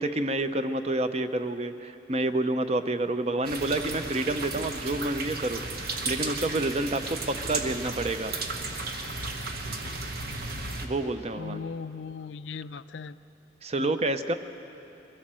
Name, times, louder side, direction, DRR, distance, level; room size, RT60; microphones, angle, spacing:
voice 1, 0.0-8.3 10.8-11.6 13.6-14.3, right 2 dB, 35° right, 10 dB, 0.7 m, -29 dB
sound 1, 3.4-10.9, right 3 dB, 55° right, 1.4 m, -34 dB
voice 2, 11.4-13.2 13.8-13.9, left 5 dB, 80° left, 15 dB, 0.4 m, -38 dB
22.0 x 15.5 x 7.6 m, 2.9 s
head